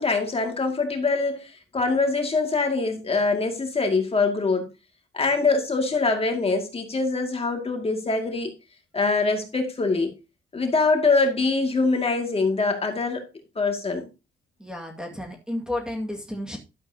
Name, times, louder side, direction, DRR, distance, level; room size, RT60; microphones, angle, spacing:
voice 1, 0.0-4.7 5.1-8.5 8.9-10.1 10.5-13.3 13.6-14.1, left 3 dB, 30° left, 2.3 m, -24 dB
voice 2, 14.6-16.6, left 1 dB, 5° right, 2.1 m, -32 dB
12.0 x 7.9 x 2.8 m
cardioid pair, 90°, 20 cm